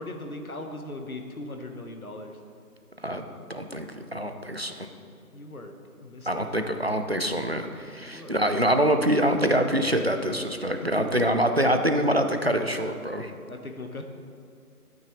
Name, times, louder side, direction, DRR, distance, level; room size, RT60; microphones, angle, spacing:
voice 1, 0.0-2.4 5.3-5.7 6.0-6.4 8.1-8.6 11.0-11.2 13.5-14.0, left 2 dB, 65° left, 4 dB, 1.3 m, -38 dB
voice 2, 3.5-4.9 6.3-13.3, right 1 dB, 45° right, 6 dB, 0.6 m, -25 dB
13.5 x 8.9 x 3.1 m, 2.4 s
figure-of-eight pair, 175°, 46 cm